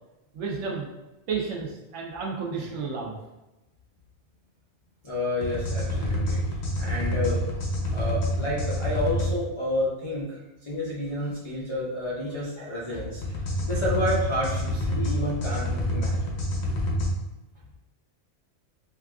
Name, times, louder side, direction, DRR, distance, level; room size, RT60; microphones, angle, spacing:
voice 1, 0.3-0.9 1.3-3.2, right 5 dB, 70° right, -2 dB, 1.0 m, -31 dB
voice 2, 5.0-6.5 6.7-7.4 7.9-16.3, left 1 dB, 45° left, -8 dB, 0.4 m, -30 dB
sound 1, 5.4-9.3 13.2-17.1, left 1 dB, 65° left, 0.9 m, -27 dB
3.7 x 2.4 x 2.3 m, 1.0 s
omnidirectional pair, 1.3 m